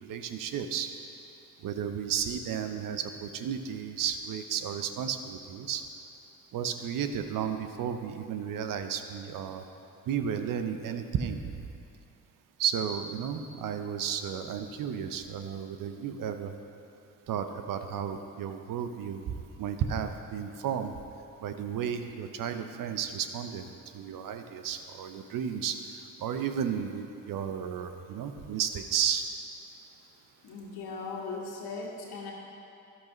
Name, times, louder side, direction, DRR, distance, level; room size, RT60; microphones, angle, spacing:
voice 1, 0.1-0.9 1.6-5.8 6.5-9.6 10.1-11.4 12.6-16.5 17.3-20.9 21.4-23.7 23.9-25.8 26.2-29.2, right 8 dB, 55° right, 8 dB, 0.8 m, -33 dB
voice 2, 30.4-32.3, left 4 dB, 65° left, -2 dB, 1.9 m, -38 dB
13.0 x 11.0 x 3.1 m, 2.7 s
figure-of-eight pair, 40°, 40 cm